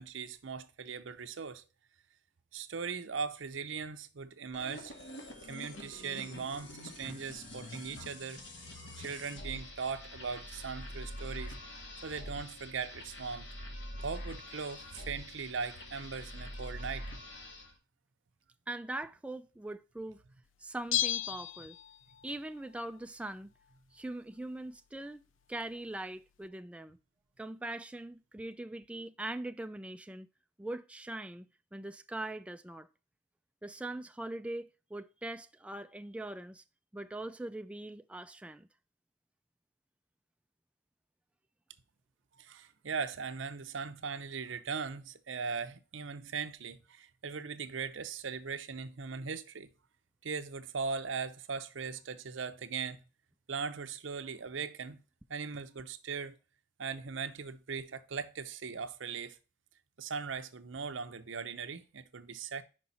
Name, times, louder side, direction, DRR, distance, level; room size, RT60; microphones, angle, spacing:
voice 1, 0.0-1.6 2.5-4.9 5.4-8.4 8.8-11.6 12.0-13.5 14.0-17.1 42.4-49.7 50.2-53.0 53.5-55.0 55.3-56.4 56.8-59.4 60.0-62.6, right 5 dB, 85° right, 0.7 m, -39 dB
sound 1, 4.5-17.7, left 1 dB, 70° left, 1.8 m, -45 dB
voice 2, 18.7-20.2 20.6-21.8 22.2-23.5 23.9-27.0 27.4-30.3 30.6-31.5 31.7-32.9 33.6-36.6 36.9-38.7, right 1 dB, 5° right, 0.3 m, -41 dB
Bell, 20.9-22.3 22.6-22.7, left 12 dB, 85° left, 0.4 m, -33 dB
5.5 x 5.3 x 4.0 m
head